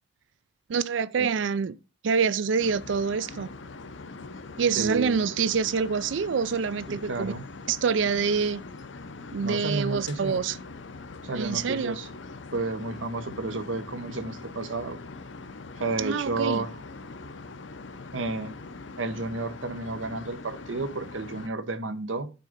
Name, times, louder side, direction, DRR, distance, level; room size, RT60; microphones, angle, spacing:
voice 1, 0.7-1.8 2.0-3.5 4.6-7.3 7.7-8.6 9.3-10.6 11.3-12.0 16.0-16.6, right 5 dB, 75° right, 0.4 m, -26 dB
sound 1, 2.6-21.5, left 3 dB, 70° left, 0.7 m, -42 dB
voice 2, 4.8-5.2 6.9-7.4 9.4-10.6 11.2-12.1 12.5-15.0 15.8-16.8 18.1-18.5 19.0-22.3, right 3 dB, 90° right, 1.0 m, -31 dB
9.3 x 3.8 x 5.2 m
head